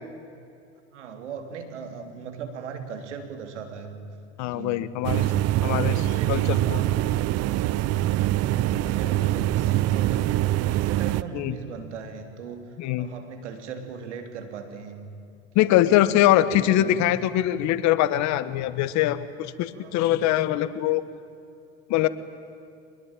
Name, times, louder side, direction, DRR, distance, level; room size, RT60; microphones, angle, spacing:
voice 1, 0.9-4.0 4.5-4.9 5.2-7.2 8.2-10.2 10.6-15.1 15.5-16.0 16.4-17.1 19.7-20.1, right 6 dB, 85° right, 6 dB, 3.3 m, -38 dB
voice 2, 4.4-5.3 5.6-5.9 6.3-6.8 11.3-11.5 12.8-13.1 15.5-21.0 21.9-22.1, left 13 dB, 55° left, 14 dB, 1.5 m, -22 dB
sound 1, 5.0-11.2, right 14 dB, 45° right, 0.8 m, -24 dB
24.5 x 21.0 x 9.1 m, 2.6 s
hypercardioid pair, 95°, 34 cm